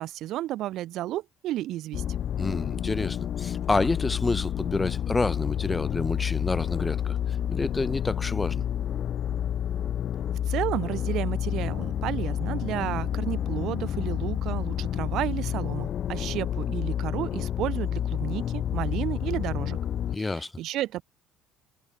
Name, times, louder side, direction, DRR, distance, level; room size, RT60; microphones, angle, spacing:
voice 1, 0.0-2.0 10.5-19.8 20.2-21.0, right 14 dB, 65° right, 4.5 m, -32 dB
sound 1, 1.9-20.2, left 10 dB, 45° left, 4.3 m, -29 dB
voice 2, 2.4-8.6 20.1-20.5, left 3 dB, 15° left, 7.8 m, -29 dB
cardioid pair, 135°, 0 cm